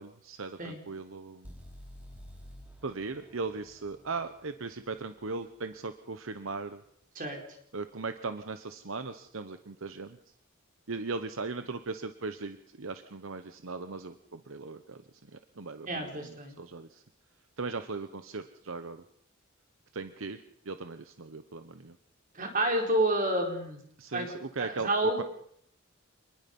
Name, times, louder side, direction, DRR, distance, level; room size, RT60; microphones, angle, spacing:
voice 1, 0.0-1.5 2.8-6.8 7.7-10.2 10.9-15.0 15.3-17.0 17.6-19.0 19.9-20.4 20.6-22.0 24.0-24.9 25.2-25.3, right 4 dB, 75° right, 9 dB, 0.9 m, -38 dB
sound 1, 1.4-5.4, equal, 10° right, 4.6 m, -51 dB
voice 2, 15.9-16.6 22.3-23.8 24.1-24.3 24.6-25.2, right 1 dB, 40° right, 2 dB, 4.3 m, -29 dB
27.0 x 20.5 x 5.4 m, 0.68 s
head